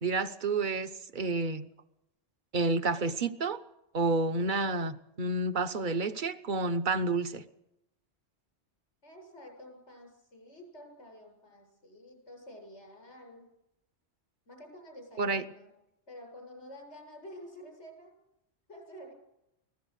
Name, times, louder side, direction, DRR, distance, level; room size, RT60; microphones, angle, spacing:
voice 1, 0.0-1.7 2.5-3.6 3.9-7.4 15.2-15.4, right 3 dB, 50° right, 10 dB, 1.1 m, -30 dB
voice 2, 9.0-13.5 14.5-15.7 16.1-18.1 18.7-19.1, equal, 85° left, 2 dB, 7.9 m, -49 dB
24.5 x 17.0 x 6.5 m, 0.85 s
omnidirectional pair, 1.1 m